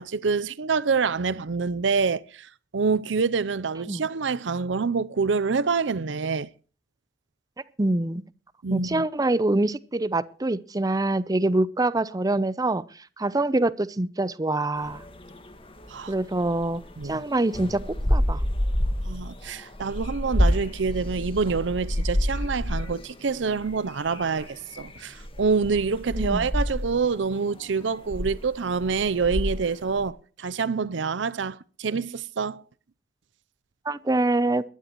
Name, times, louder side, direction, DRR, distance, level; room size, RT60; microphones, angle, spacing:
voice 1, 0.0-2.5 2.7-6.5 8.6-9.0 15.9-16.1 17.0-17.2 19.0-32.6, right 5 dB, 90° right, 0.6 m, -26 dB
voice 2, 7.8-8.2 8.7-12.8 13.2-15.0 16.1-18.4 26.2-26.5 33.9-34.6, right 2 dB, 20° right, 0.6 m, -25 dB
sound 1, 14.8-17.2 17.5-30.1, equal, 30° left, 1.7 m, -29 dB
21.5 x 12.0 x 3.0 m
head